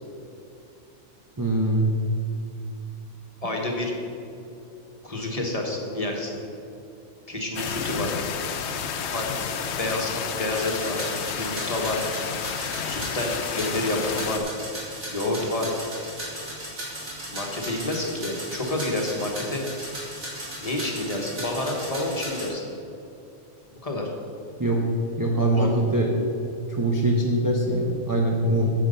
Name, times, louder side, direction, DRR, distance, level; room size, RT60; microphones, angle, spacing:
voice 1, 1.4-1.9 24.6-24.8 25.2-26.1 26.7-28.7, right 1 dB, 20° right, -1 dB, 0.7 m, -22 dB
voice 2, 3.4-3.9 5.0-6.4 7.3-8.1 9.1-9.3 9.8-11.0 11.3-12.0 12.8-14.5 15.1-15.7 17.3-19.6 20.6-22.6 23.8-24.1 25.5-25.7, left 2 dB, 30° left, 0 dB, 1.4 m, -28 dB
sound 1, 7.6-14.4, left 7 dB, 65° left, 0.9 m, -31 dB
sound 2, 10.5-22.5, right 1 dB, 65° right, 2.9 m, -36 dB
9.3 x 7.7 x 5.4 m, 2.7 s
omnidirectional pair, 1.3 m